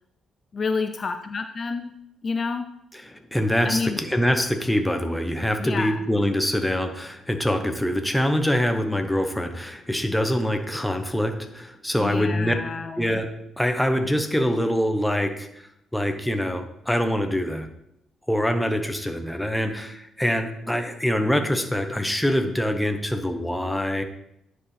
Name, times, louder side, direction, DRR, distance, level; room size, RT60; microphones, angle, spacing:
voice 1, 0.5-1.9 2.2-2.7 3.6-4.0 5.6-6.1 12.0-13.2, left 4 dB, 40° left, 7 dB, 0.4 m, -29 dB
voice 2, 3.1-12.5 13.0-15.7 15.9-17.7 18.3-24.0, equal, 5° left, 6 dB, 0.8 m, -24 dB
9.9 x 4.8 x 3.3 m, 0.79 s
cardioid pair, 90°, 0 cm